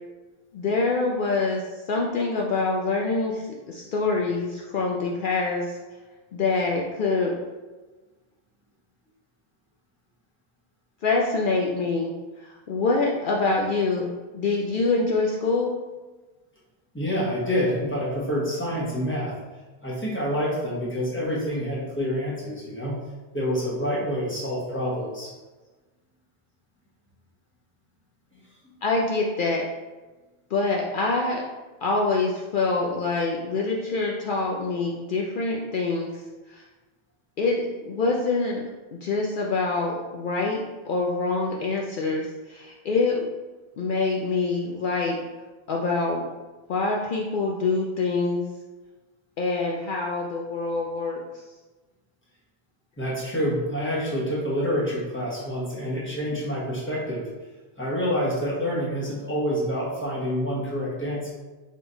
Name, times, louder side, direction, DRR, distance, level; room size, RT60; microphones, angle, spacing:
voice 1, 0.5-1.6 1.9-5.6 6.3-7.3 11.0-12.1 12.7-14.1 14.3-15.7 28.8-29.6 30.5-31.4 31.8-36.1 36.5-36.6 37.4-38.6 38.9-43.2 43.8-45.2 45.7-46.2 46.7-48.4 49.4-51.2, left 3 dB, 60° left, -2 dB, 0.6 m, -25 dB
voice 2, 16.9-19.3 19.8-23.0 23.3-25.3 53.0-57.2 57.8-61.3, equal, 10° left, -6 dB, 1.2 m, -27 dB
3.9 x 3.1 x 3.9 m, 1.2 s
omnidirectional pair, 1.1 m